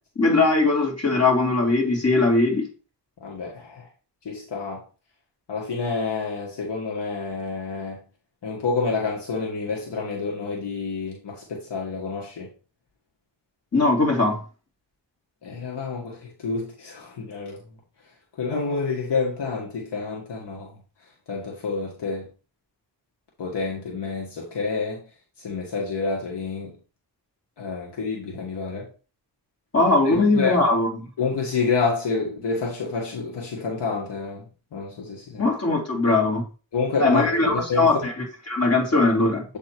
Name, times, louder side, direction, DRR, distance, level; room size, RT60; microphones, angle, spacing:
voice 1, 0.2-2.7 13.7-14.4 29.7-30.9 35.4-36.4 37.0-38.1 38.5-39.4, left 3 dB, 35° left, 2.8 m, -20 dB
voice 2, 3.2-3.8 4.2-4.8 5.5-8.0 8.4-12.5 15.4-17.6 18.4-20.7 21.3-22.3 23.4-25.0 25.4-26.7 27.6-28.9 30.0-30.6 31.2-34.4 34.7-35.4 36.7-38.1, left 4 dB, 70° left, 1.8 m, -28 dB
7.9 x 3.6 x 4.5 m
cardioid pair, 90°, 43 cm